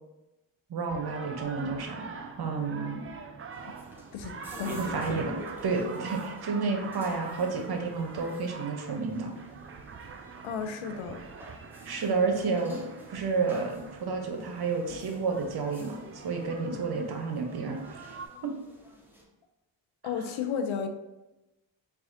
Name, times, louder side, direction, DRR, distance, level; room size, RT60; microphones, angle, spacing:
voice 1, 0.7-2.1 2.4-3.0 4.8-5.3 5.6-9.4 11.8-12.8 13.1-16.0 16.2-18.2 18.4-18.5, right 4 dB, 55° right, 4 dB, 0.7 m, -30 dB
sound 1, 0.9-18.3, right 5 dB, 30° right, 0.3 m, -44 dB
sound 2, 3.5-19.2, equal, 5° right, 0.8 m, -50 dB
voice 2, 4.6-5.2 10.4-11.2 20.0-20.9, left 6 dB, 80° left, 6 dB, 0.5 m, -33 dB
4.1 x 2.4 x 2.5 m, 0.98 s
supercardioid pair, 45°, 47 cm